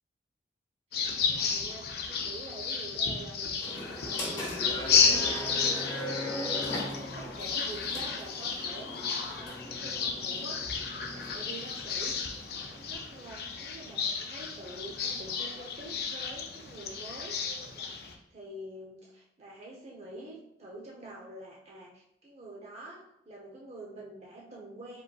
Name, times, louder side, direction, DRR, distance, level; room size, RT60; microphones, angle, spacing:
sound 1, 0.9-18.1, left 5 dB, 60° left, 0.5 m, -32 dB
voice 1, 1.1-10.6 10.9-12.4 12.7-17.4 17.7-25.0, right 1 dB, 35° right, -3 dB, 0.7 m, -46 dB
sound 2, 3.6-13.1, left 1 dB, 25° left, 1.2 m, -40 dB
5.2 x 3.8 x 2.3 m, 0.82 s
head